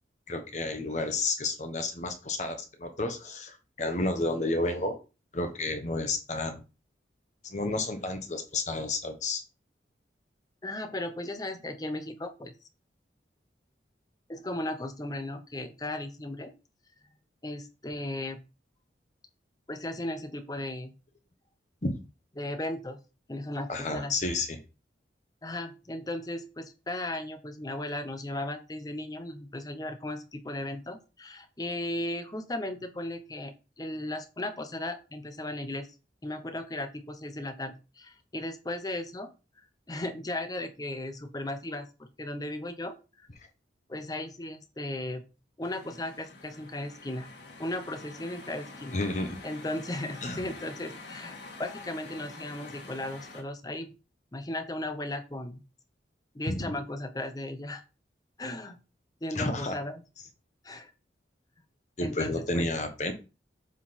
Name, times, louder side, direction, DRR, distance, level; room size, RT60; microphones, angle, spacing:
voice 1, 0.3-5.0 5.3-6.6 7.4-9.4 21.8-22.0 23.7-24.6 48.9-49.4 50.2-50.5 56.5-56.7 59.3-59.8 62.0-63.1, left 2 dB, 40° left, 5 dB, 1.1 m, -31 dB
voice 2, 10.6-12.5 14.3-16.5 17.4-18.4 19.7-20.9 22.4-23.0 23.3-24.1 25.4-35.9 36.2-39.3 39.9-43.3 43.9-45.2 45.6-47.3 47.6-49.0 49.4-53.9 54.3-55.6 56.3-57.8 58.4-58.8 59.2-60.0 60.6-60.9 62.0-62.7, left 1 dB, 20° left, 8 dB, 0.7 m, -36 dB
sound 1, 45.6-53.4, left 3 dB, 70° left, 1.9 m, -46 dB
7.4 x 3.8 x 4.2 m, 0.31 s
head